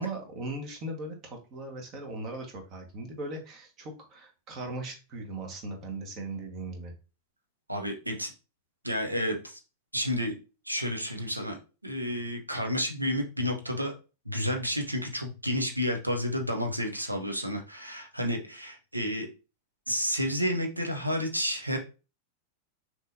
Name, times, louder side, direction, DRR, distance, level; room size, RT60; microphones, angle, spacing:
voice 1, 0.0-6.9, right 2 dB, 35° right, 3 dB, 1.5 m, -38 dB
voice 2, 7.7-8.3 8.8-9.6 9.9-10.4 10.7-11.6 11.8-13.9 14.3-19.3 19.9-21.8, equal, 90° right, 3 dB, 0.9 m, -30 dB
6.1 x 3.2 x 2.7 m, 0.32 s
figure-of-eight pair, 90°, 0 cm